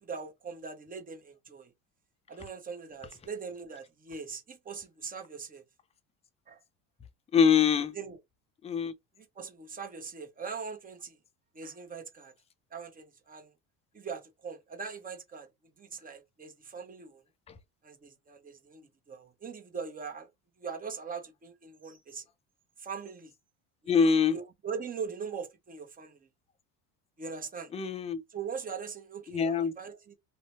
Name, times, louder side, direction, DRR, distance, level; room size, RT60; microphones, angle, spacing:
voice 1, 0.0-1.7 2.3-5.6 6.5-6.6 7.9-8.2 9.2-11.2 11.5-12.3 12.7-13.5 13.9-15.5 15.8-17.2 17.8-20.3 20.6-22.3 22.8-23.3 23.8-26.2 27.2-27.7 28.3-30.1, right 5 dB, 25° right, 0.8 m, -41 dB
voice 2, 7.3-7.9 8.6-8.9 23.9-24.4 27.7-28.2 29.3-29.7, left 6 dB, 20° left, 0.4 m, -24 dB
2.6 x 2.1 x 2.9 m
supercardioid pair, 110°, 35 cm